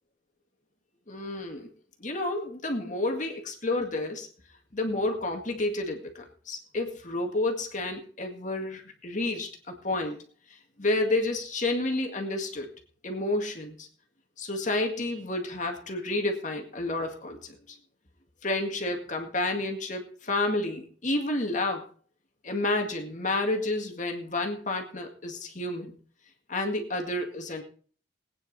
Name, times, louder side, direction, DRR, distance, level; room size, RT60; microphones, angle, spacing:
voice 1, 1.1-1.7 2.0-4.3 4.7-10.2 10.8-12.7 13.0-13.9 14.4-17.8 18.4-21.9 22.4-25.9 26.5-27.6, left 2 dB, 40° left, 3 dB, 2.0 m, -30 dB
19.5 x 9.5 x 4.1 m, 0.43 s
head